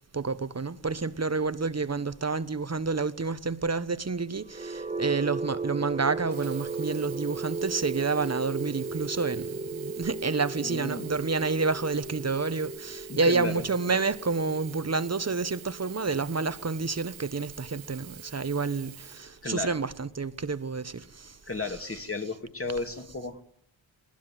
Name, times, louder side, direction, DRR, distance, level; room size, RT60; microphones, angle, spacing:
voice 1, 0.1-21.4 21.6-22.3 23.0-23.1, right 4 dB, 35° right, 1.2 m, -29 dB
sound 1, 4.4-18.3, right 3 dB, 15° right, 1.0 m, -37 dB
Sink (filling or washing), 6.2-19.9 20.7-20.8, right 9 dB, 85° right, 1.3 m, -48 dB
voice 2, 10.6-11.1 13.1-13.6 19.4-19.8 21.5-23.4, left 3 dB, 30° left, 2.5 m, -34 dB
20.5 x 19.5 x 9.3 m
cardioid pair, 55°, 46 cm